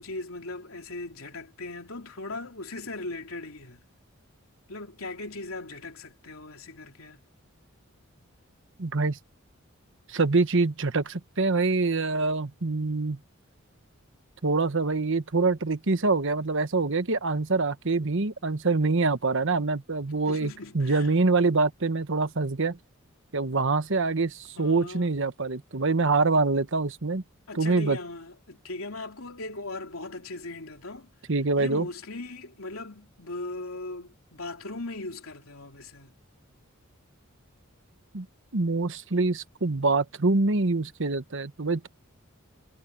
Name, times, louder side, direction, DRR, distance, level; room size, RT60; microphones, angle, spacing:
voice 1, 0.0-3.8 4.7-7.2 20.3-21.1 24.6-25.1 27.5-31.1 31.6-36.1, left 2 dB, 80° left, 3.2 m, -39 dB
voice 2, 8.8-9.2 10.1-13.2 14.4-22.8 23.3-27.2 27.5-28.0 31.3-31.9 38.1-38.3 38.5-41.9, right 3 dB, 65° right, 1.2 m, -25 dB
head